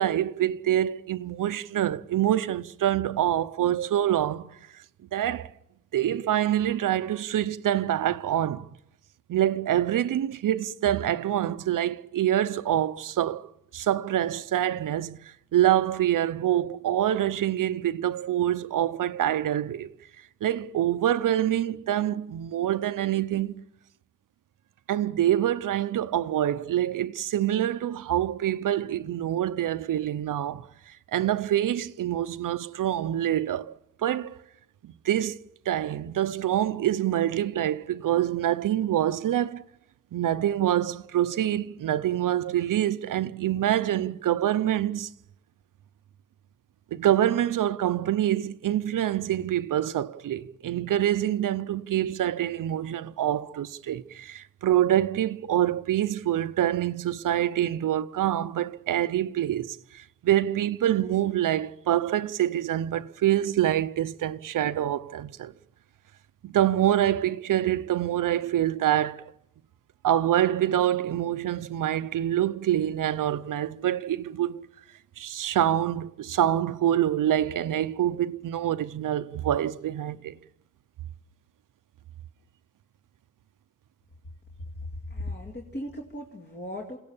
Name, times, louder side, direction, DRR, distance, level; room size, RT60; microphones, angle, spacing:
voice 1, 0.0-4.5 5.1-5.5 5.9-8.7 9.3-19.9 20.4-23.6 24.9-33.7 34.0-34.4 34.8-35.4 35.7-39.6 40.1-45.1 46.9-65.5 66.4-69.3 70.0-74.7 75.2-80.4, right 11 dB, 75° right, 0.8 m, -26 dB
voice 2, 85.1-87.0, left 1 dB, 30° left, 2.3 m, -37 dB
29.5 x 17.0 x 7.1 m
wide cardioid pair, 170°, 32 cm